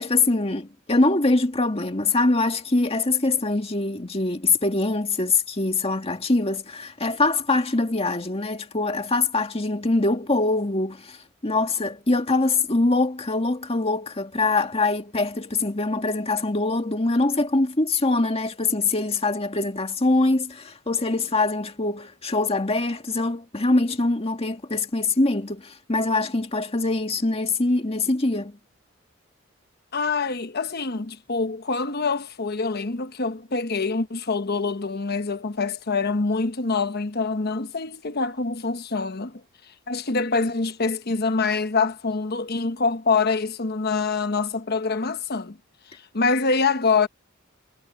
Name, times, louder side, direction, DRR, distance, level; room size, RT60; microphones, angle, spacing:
voice 1, 0.0-11.2 11.4-28.6, left 2 dB, 30° left, 1.9 m, -23 dB
voice 2, 29.9-39.4 39.9-45.6 46.1-47.1, left 4 dB, 50° left, 1.1 m, -25 dB
head